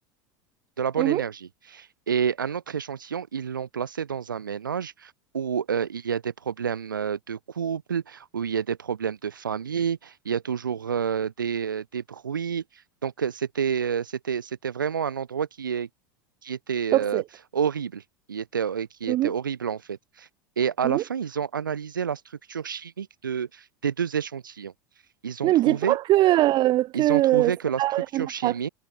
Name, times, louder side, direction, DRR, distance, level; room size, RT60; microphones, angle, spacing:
voice 1, 0.8-12.6 13.0-15.9 16.4-17.2 17.5-18.0 18.3-20.3 20.6-22.2 22.5-24.7 25.2-26.0 26.9-27.8 28.1-28.7, right 7 dB, 90° right, 5.9 m, -29 dB
voice 2, 16.9-17.2 19.1-19.3 20.8-21.0 25.4-27.5 27.8-28.5, right 15 dB, 45° right, 2.6 m, -22 dB
hypercardioid pair, 90°, 10 cm